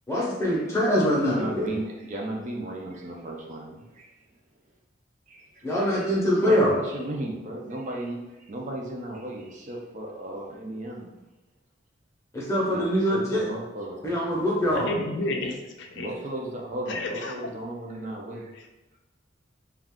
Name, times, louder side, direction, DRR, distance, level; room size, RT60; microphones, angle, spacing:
voice 1, 0.1-1.7 5.6-6.7 12.3-13.5 14.0-14.9, equal, 15° left, -5 dB, 0.7 m, -23 dB
voice 2, 1.3-4.1 5.3-5.5 6.0-6.1 6.4-11.2 12.7-14.2 16.0-18.5, right 1 dB, 40° right, -1 dB, 0.4 m, -35 dB
voice 3, 14.7-16.1 16.9-17.5 18.5-18.6, left 2 dB, 65° left, 3 dB, 0.4 m, -31 dB
2.4 x 2.3 x 3.5 m, 1.0 s
head